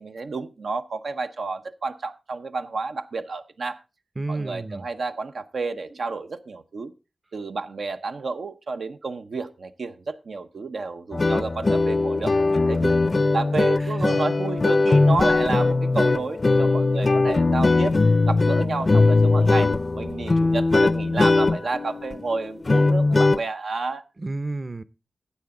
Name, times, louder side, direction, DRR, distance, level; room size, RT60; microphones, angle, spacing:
voice 1, 0.0-3.8 4.3-6.9 7.3-13.0 13.3-17.9 18.3-24.0, right 3 dB, 85° right, 0.8 m, -30 dB
voice 2, 4.2-4.9 13.8-14.0 24.2-24.8, right 2 dB, 35° right, 0.6 m, -31 dB
sound 1, 11.1-23.4, left 3 dB, 45° left, 0.4 m, -20 dB
13.0 x 8.7 x 3.8 m
wide cardioid pair, 75°, 0 cm